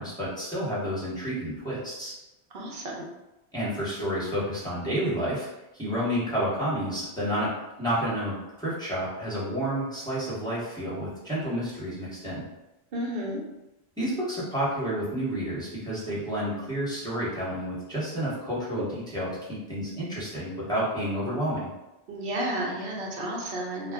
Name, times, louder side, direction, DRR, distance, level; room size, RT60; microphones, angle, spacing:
voice 1, 0.0-2.1 3.5-5.5 5.7-7.5 7.8-12.5 14.0-21.7, equal, 5° left, -9 dB, 1.0 m, -30 dB
voice 2, 2.5-3.0 12.9-13.4 22.1-23.9, right 1 dB, 65° right, -1 dB, 0.8 m, -32 dB
2.4 x 2.1 x 3.5 m, 0.98 s
omnidirectional pair, 1.1 m